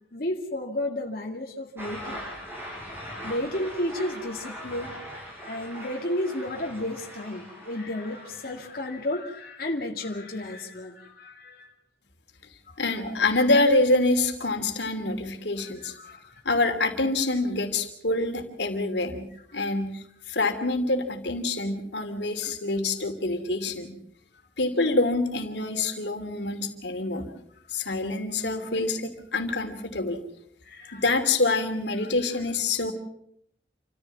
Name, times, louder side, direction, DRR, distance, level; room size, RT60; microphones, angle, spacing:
voice 1, 0.1-2.2 3.2-5.0 5.4-11.7 12.7-13.2 15.8-16.4 19.5-19.6 30.6-31.0 32.0-32.1, left 1 dB, 55° left, 0 dB, 2.2 m, -33 dB
sound 1, 1.8-8.9, equal, 15° right, 6.3 m, -41 dB
voice 2, 12.8-15.9 16.4-19.2 19.5-24.0 24.6-27.3 27.7-30.2 30.9-32.9, left 2 dB, 85° left, 6 dB, 2.8 m, -26 dB
28.5 x 14.5 x 7.3 m, 0.69 s
head